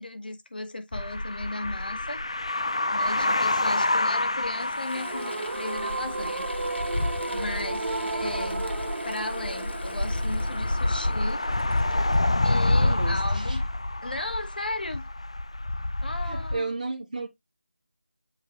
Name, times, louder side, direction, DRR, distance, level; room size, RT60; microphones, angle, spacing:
voice 1, 0.0-2.2 2.9-6.5 7.3-7.9 8.1-8.6 9.0-11.4 12.4-13.7 14.0-15.1 16.0-16.7, left 2 dB, 55° left, 1.4 m, -35 dB
sound 1, 0.9-16.6, left 2 dB, 30° left, 0.3 m, -28 dB
Mechanisms / Drill, 4.1-12.8, left 2 dB, 75° left, 1.2 m, -43 dB
sound 2, 4.9-12.0, right 2 dB, 75° right, 0.6 m, -34 dB
voice 2, 8.0-8.7 12.7-13.6 16.2-17.3, right 3 dB, 40° right, 1.1 m, -35 dB
8.0 x 4.0 x 3.1 m
figure-of-eight pair, 175°, 6 cm